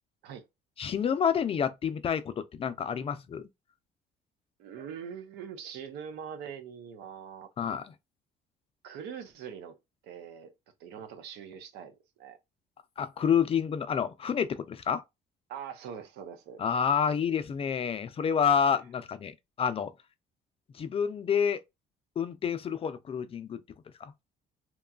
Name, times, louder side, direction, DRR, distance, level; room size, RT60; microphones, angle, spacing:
voice 1, 0.8-3.5 7.6-7.9 13.0-15.0 16.6-19.9 20.7-21.6 22.2-23.6 24.0-24.1, left 7 dB, 35° left, 0.4 m, -28 dB
voice 2, 4.6-7.5 8.8-9.8 10.0-10.5 10.8-12.4 15.5-16.6, right 7 dB, 85° right, 0.7 m, -43 dB
2.9 x 2.3 x 2.3 m
cardioid pair, 110°, 17 cm